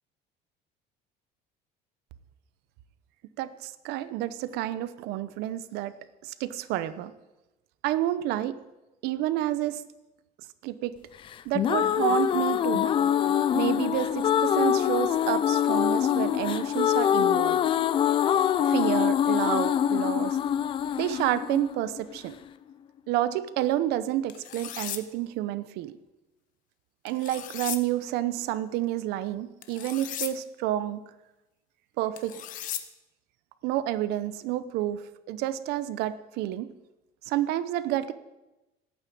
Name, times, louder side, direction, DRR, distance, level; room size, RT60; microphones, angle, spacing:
voice 1, 3.4-5.9 6.2-7.1 7.8-8.6 9.0-9.8 10.6-10.9 11.4-12.9 13.5-17.6 18.6-20.4 21.0-22.3 23.1-26.0 27.0-31.0 32.0-32.4 33.6-36.7 37.2-38.1, right 13 dB, 70° right, 14 dB, 0.9 m, -29 dB
sound 1, 11.3-22.3, left 9 dB, 30° left, 0.4 m, -24 dB
sound 2, 24.3-25.0 27.1-27.8 29.6-30.3 32.2-32.8, left 11 dB, 50° left, 1.0 m, -36 dB
11.5 x 8.9 x 8.7 m, 1.0 s
cardioid pair, 165°, 17 cm